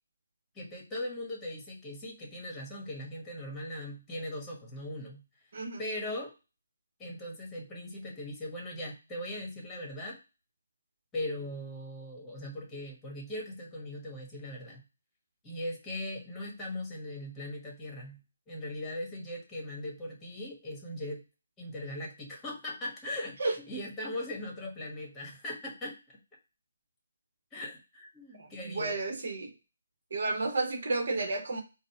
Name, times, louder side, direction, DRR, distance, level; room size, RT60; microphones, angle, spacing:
voice 1, 0.5-5.2 5.8-6.3 7.0-10.2 11.1-14.8 15.4-18.2 18.5-21.2 21.6-25.9 27.5-29.0, left 1 dB, 10° left, 1.2 m, -39 dB
voice 2, 28.3-29.5 30.1-31.6, right 3 dB, 60° right, 0.9 m, -32 dB
4.0 x 2.1 x 4.1 m
figure-of-eight pair, 145°, 0 cm